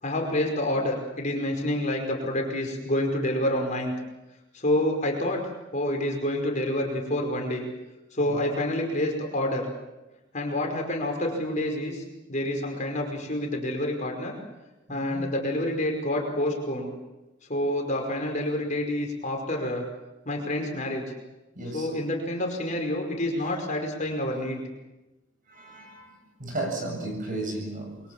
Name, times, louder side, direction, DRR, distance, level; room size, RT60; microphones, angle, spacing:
voice 1, 0.0-3.9 4.5-5.4 5.7-7.6 8.1-9.7 10.3-14.3 14.9-16.9 17.5-19.9 20.3-21.0 21.7-24.6, left 1 dB, 35° left, 2 dB, 5.3 m, -28 dB
voice 2, 8.2-8.5 14.9-15.2 21.5-21.9 23.4-23.5 25.5-28.0, right 2 dB, 40° right, 3 dB, 8.0 m, -35 dB
28.0 x 23.5 x 7.5 m, 1.0 s
head